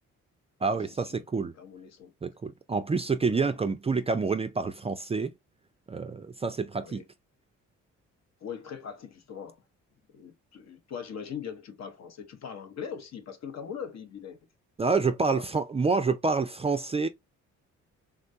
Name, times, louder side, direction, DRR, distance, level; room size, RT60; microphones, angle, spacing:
voice 1, 0.6-1.5 2.2-5.3 5.9-7.0 14.8-17.1, right 4 dB, 20° right, 0.3 m, -28 dB
voice 2, 1.5-2.1 3.2-3.6 6.8-7.0 8.4-9.6 10.1-14.4 15.2-15.5, left 7 dB, 60° left, 0.8 m, -41 dB
3.6 x 2.2 x 2.6 m
cardioid pair, 90°, 30 cm